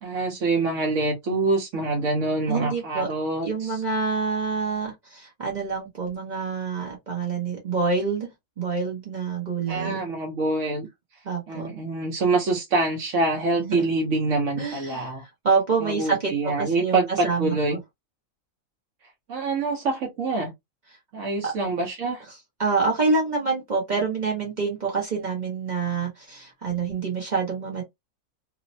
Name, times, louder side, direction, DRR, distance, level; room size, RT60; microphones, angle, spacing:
voice 1, 0.0-3.8 9.7-10.9 11.5-15.2 15.8-17.8 19.3-20.5 21.1-22.2, right 3 dB, 70° right, 1.1 m, -25 dB
voice 2, 2.5-3.1 3.4-8.3 8.6-10.0 11.2-11.7 13.6-13.8 14.6-15.1 15.4-17.6 21.4-21.5 22.6-27.8, right 4 dB, 40° right, 0.8 m, -26 dB
3.0 x 2.0 x 2.5 m
omnidirectional pair, 1.4 m